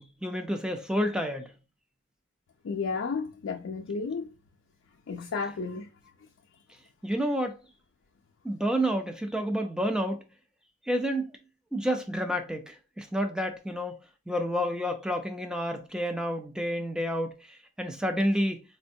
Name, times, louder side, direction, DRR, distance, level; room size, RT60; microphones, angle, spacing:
voice 1, 0.0-1.5 7.0-7.6 8.4-10.2 10.9-11.3 11.7-13.9 14.3-18.6, equal, 5° right, 0.5 m, -29 dB
voice 2, 2.6-4.3 5.1-5.9, left 4 dB, 85° left, 0.4 m, -32 dB
4.3 x 2.2 x 2.6 m
head